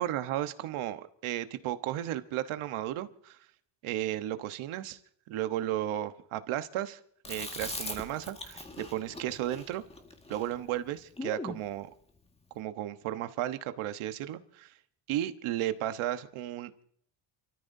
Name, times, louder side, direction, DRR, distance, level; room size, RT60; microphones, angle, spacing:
voice 1, 0.0-3.4 3.8-5.0 5.3-7.0 7.3-9.8 10.3-11.9 12.5-14.7 15.1-16.8, right 13 dB, 85° right, 9 dB, 1.2 m, -34 dB
Chewing mastication, 7.2-11.6, left 2 dB, 10° left, 1.8 m, -41 dB
29.0 x 14.0 x 2.7 m, 0.64 s
cardioid pair, 100°, 48 cm